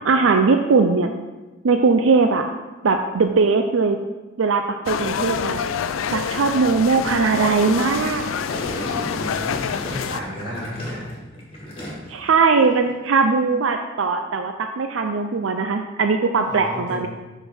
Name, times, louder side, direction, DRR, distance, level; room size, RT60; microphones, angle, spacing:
voice 1, 0.0-1.1 1.6-2.5 2.8-4.0 4.4-5.6 6.1-8.3 12.1-17.1, right 4 dB, 75° right, 5 dB, 0.5 m, -19 dB
sound 1, 4.9-10.2, left 7 dB, 90° left, 0.4 m, -27 dB
Gurgling, 8.5-12.3 12.6-12.9, equal, 30° left, 2.2 m, -34 dB
voice 2, 9.0-11.1 16.4-17.1, equal, 25° right, -7 dB, 2.8 m, -33 dB
11.0 x 4.0 x 4.3 m, 1.2 s
head